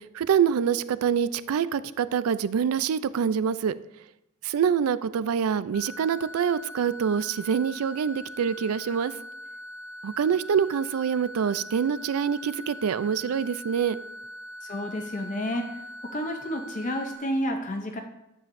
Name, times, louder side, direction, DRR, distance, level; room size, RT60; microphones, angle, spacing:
voice 1, 0.1-3.7 4.4-9.1 10.0-14.0, right 7 dB, 75° right, 16 dB, 0.3 m, -25 dB
sound 1, 5.7-17.2, equal, 10° right, 1.8 m, -42 dB
voice 2, 14.6-15.8 16.1-18.0, equal, 35° left, 4 dB, 0.6 m, -30 dB
9.8 x 7.1 x 2.6 m, 0.87 s
head